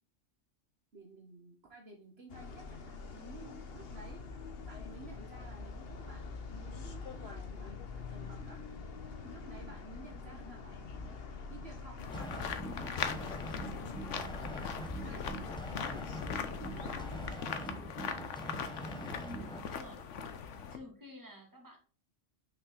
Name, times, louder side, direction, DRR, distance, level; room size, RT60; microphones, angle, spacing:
voice 1, 0.9-4.3 4.6-8.6 9.2-11.2 11.5-13.3 13.7-15.3 15.7-18.2, right 2 dB, 55° right, 1 dB, 1.5 m, -53 dB
sound 1, 2.3-17.4, left 4 dB, 55° left, 1.1 m, -45 dB
sound 2, 12.0-20.8, left 6 dB, 75° left, 1.2 m, -40 dB
sound 3, 12.1-19.7, right 1 dB, 5° left, 0.7 m, -44 dB
voice 2, 19.2-20.1 20.5-21.8, left 1 dB, 15° right, 0 dB, 2.4 m, -50 dB
6.2 x 5.7 x 3.8 m, 0.39 s
omnidirectional pair, 1.3 m